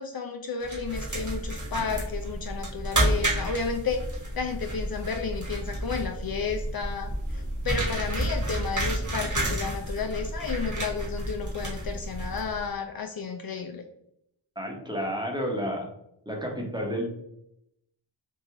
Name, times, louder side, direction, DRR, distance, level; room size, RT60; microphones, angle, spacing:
voice 1, 0.0-13.9, left 5 dB, 55° left, 4 dB, 0.4 m, -32 dB
sound 1, 0.6-12.7, right 1 dB, 40° right, 1.4 m, -31 dB
voice 2, 14.5-15.9 16.2-17.1, equal, 10° right, 0 dB, 1.0 m, -31 dB
3.6 x 2.5 x 2.9 m, 0.77 s
cardioid pair, 40°, 46 cm